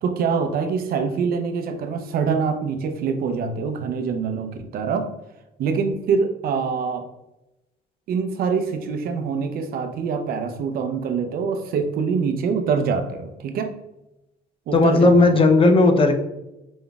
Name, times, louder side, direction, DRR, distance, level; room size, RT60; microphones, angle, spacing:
voice 1, 0.0-5.1 5.6-7.1 8.1-13.7 14.7-15.5, right 5 dB, 65° right, 7 dB, 0.6 m, -24 dB
voice 2, 14.7-16.1, left 3 dB, 30° left, 5 dB, 0.6 m, -15 dB
5.1 x 3.7 x 2.3 m, 0.92 s
cardioid pair, 110°, 17 cm